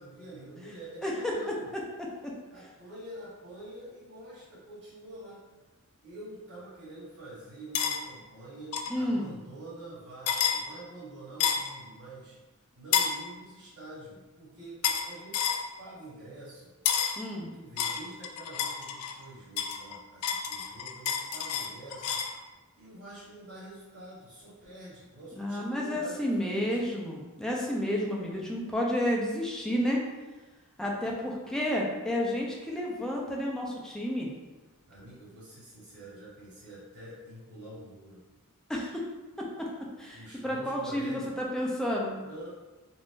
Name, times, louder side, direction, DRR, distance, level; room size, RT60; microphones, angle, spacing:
voice 1, 0.0-1.7 2.5-5.4 6.0-12.3 12.7-15.5 15.8-16.7 17.5-22.2 22.8-26.9 34.9-38.2 40.1-41.3 42.2-42.5, right 1 dB, 70° right, -10 dB, 1.3 m, -46 dB
voice 2, 1.0-1.3 2.0-2.3 8.9-9.3 17.2-17.5 25.3-30.0 30.8-34.3 38.7-39.0 39.4-39.7 40.0-42.2, equal, 5° left, -3 dB, 0.5 m, -31 dB
sound 1, 7.7-8.0 8.7-9.0 10.3-10.6 11.4-11.7 12.9-13.2 14.8-15.1 15.3-15.6 16.9-17.2 17.8-19.2 19.6-22.4, left 7 dB, 70° left, 0.3 m, -29 dB
2.6 x 2.5 x 3.5 m, 1.2 s
head